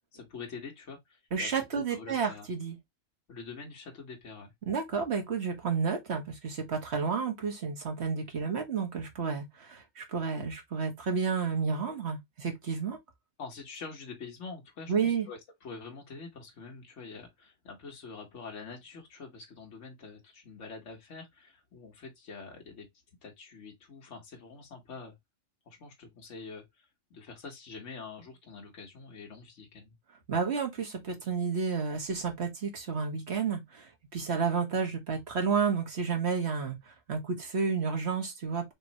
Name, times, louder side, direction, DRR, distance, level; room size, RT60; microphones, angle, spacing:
voice 1, 0.1-2.5 3.3-4.5 13.4-22.9 23.2-25.2 25.7-30.0, left 4 dB, 65° left, 1.6 m, -45 dB
voice 2, 1.3-2.8 4.6-13.0 14.9-15.3 30.3-38.7, right 5 dB, 55° right, 1.7 m, -31 dB
5.2 x 3.1 x 2.9 m
omnidirectional pair, 1.3 m